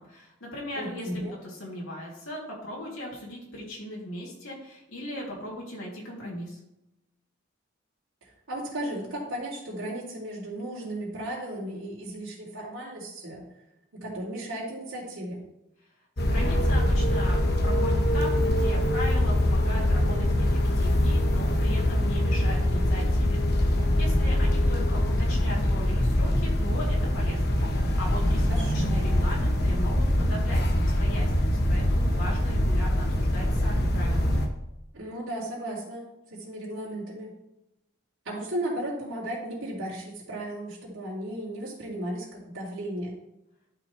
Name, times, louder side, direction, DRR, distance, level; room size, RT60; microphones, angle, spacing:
voice 1, 0.0-6.6 16.2-34.3, left 1 dB, 85° left, -4 dB, 2.8 m, -38 dB
voice 2, 0.7-1.3 8.2-13.4 13.9-15.4 28.5-28.9 34.9-37.3 38.2-43.1, right 1 dB, 75° right, -9 dB, 2.8 m, -35 dB
sound 1, 16.2-34.5, left 1 dB, 50° left, 1.1 m, -24 dB
11.5 x 5.7 x 3.3 m, 0.87 s
head